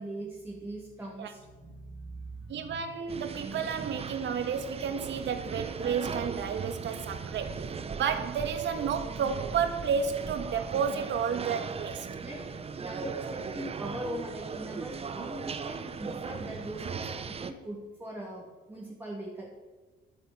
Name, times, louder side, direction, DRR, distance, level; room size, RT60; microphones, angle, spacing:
voice 1, 0.0-2.9 12.2-12.5 12.8-19.5, right 1 dB, 10° right, -3 dB, 2.9 m, -41 dB
voice 2, 2.5-12.1 15.2-15.3, right 7 dB, 60° right, 8 dB, 1.8 m, -31 dB
sound 1, 3.1-17.5, right 5 dB, 30° right, 0.9 m, -38 dB
12.5 x 10.5 x 7.3 m, 1.3 s
cardioid pair, 130°, 21 cm